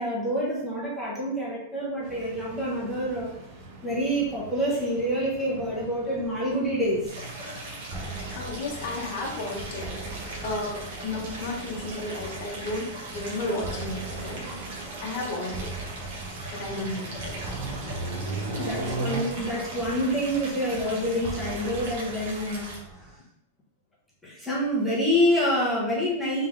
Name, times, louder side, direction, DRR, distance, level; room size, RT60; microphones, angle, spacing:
voice 1, 0.0-3.3 3.8-7.1 18.5-22.7 24.2-26.5, equal, 5° left, -8 dB, 1.1 m, -27 dB
sound 1, 2.0-19.2, right 2 dB, 45° right, 0.8 m, -40 dB
Stream, 7.1-22.8, right 2 dB, 65° right, 1.3 m, -40 dB
sound 2, 7.9-23.2, right 3 dB, 15° right, 0.5 m, -41 dB
voice 2, 8.3-14.5 15.0-15.7 16.5-17.8, left 2 dB, 45° left, -1 dB, 1.0 m, -33 dB
3.6 x 3.5 x 3.3 m, 0.78 s
supercardioid pair, 170°, 0 cm